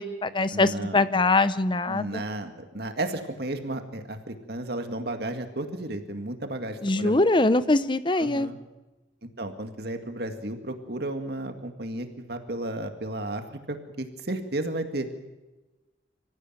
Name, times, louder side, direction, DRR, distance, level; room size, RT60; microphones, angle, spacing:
voice 1, 0.0-2.2 6.8-8.5, left 2 dB, 25° left, 14 dB, 0.8 m, -23 dB
voice 2, 0.5-1.0 1.9-7.2 8.2-8.6 9.4-15.1, right 1 dB, 55° right, 6 dB, 2.0 m, -33 dB
25.5 x 15.5 x 9.2 m, 1.1 s
head